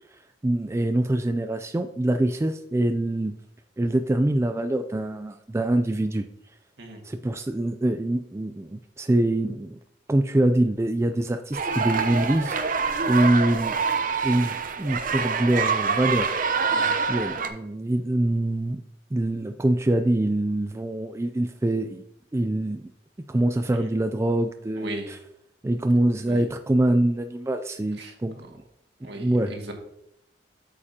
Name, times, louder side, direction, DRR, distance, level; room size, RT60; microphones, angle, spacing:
voice 1, 0.4-3.4 3.8-6.3 7.0-9.8 10.1-12.6 13.1-13.8 14.2-16.3 17.1-18.8 19.1-22.0 22.3-22.8 23.3-25.0 25.6-28.4 29.0-29.5, right 1 dB, 15° right, 8 dB, 0.3 m, -24 dB
sound 1, 11.5-17.5, right 5 dB, 50° right, 0.8 m, -26 dB
voice 2, 24.8-25.1 26.3-26.5 28.0-28.5 29.0-29.7, right 1 dB, 65° right, 2 dB, 1.9 m, -38 dB
8.7 x 7.0 x 2.8 m, 0.77 s
head